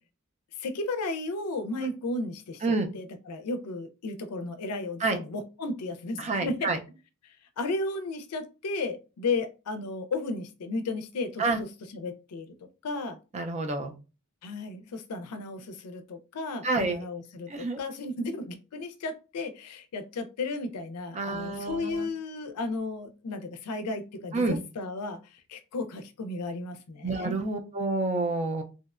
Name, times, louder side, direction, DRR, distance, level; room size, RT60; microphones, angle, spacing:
voice 1, 0.6-6.7 7.2-11.7 11.9-12.5 12.8-13.2 14.4-27.4, left 3 dB, 90° left, 0.4 m, -34 dB
voice 2, 6.2-6.8 11.4-11.6 13.3-13.9 16.6-17.0 17.5-17.8 21.1-22.1 24.3-24.6 27.0-28.6, right 3 dB, 30° right, 0.4 m, -28 dB
2.7 x 2.1 x 2.3 m
head